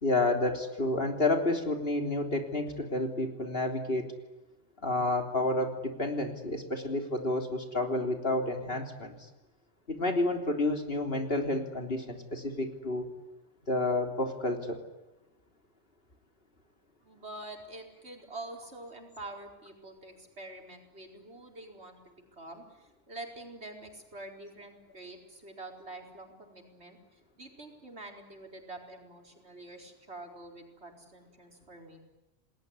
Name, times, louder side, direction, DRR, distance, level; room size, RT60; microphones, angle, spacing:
voice 1, 0.0-4.1 4.8-9.2 9.9-13.1 13.7-14.8, left 2 dB, 60° left, 4 dB, 3.7 m, -30 dB
voice 2, 17.0-27.0 27.4-32.0, right 2 dB, 80° right, 2 dB, 4.9 m, -46 dB
29.0 x 20.0 x 9.7 m, 1.0 s
omnidirectional pair, 1.1 m